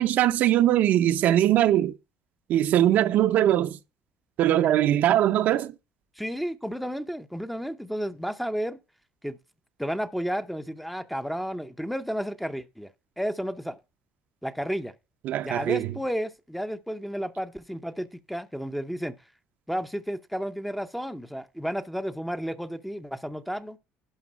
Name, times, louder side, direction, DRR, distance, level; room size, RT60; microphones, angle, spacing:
voice 1, 0.0-1.9 2.5-3.8 4.4-5.7 15.3-15.9, right 12 dB, 60° right, 0.6 m, -21 dB
voice 2, 6.2-8.8 9.2-9.4 9.8-12.9 13.2-13.8 14.4-14.9 15.4-19.1 19.7-23.8, equal, ahead, 0.6 m, -32 dB
11.5 x 5.2 x 5.1 m
cardioid pair, 135°, 3 cm